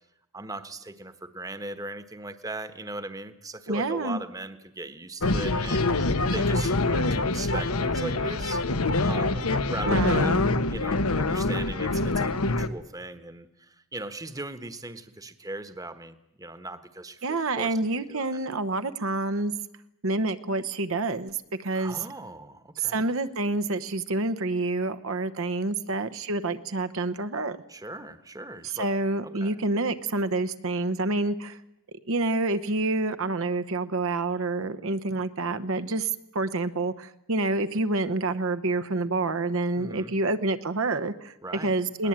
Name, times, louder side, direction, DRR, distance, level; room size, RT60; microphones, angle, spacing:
voice 1, 0.3-5.9 6.3-8.6 9.1-17.8 18.1-18.4 21.7-23.1 27.7-28.9 29.2-29.6 39.8-40.1 41.4-41.7 42.0-42.1, right 2 dB, 15° right, 11 dB, 1.2 m, -39 dB
voice 2, 3.7-4.2 9.9-10.4 17.2-19.5 20.0-21.4 21.6-22.0 22.8-27.6 28.6-31.6 32.1-41.3 41.6-42.1, right 2 dB, 65° right, 10 dB, 1.0 m, -28 dB
sound 1, 5.2-12.7, left 2 dB, 85° left, 1.2 m, -25 dB
21.0 x 19.0 x 8.9 m, 0.85 s
head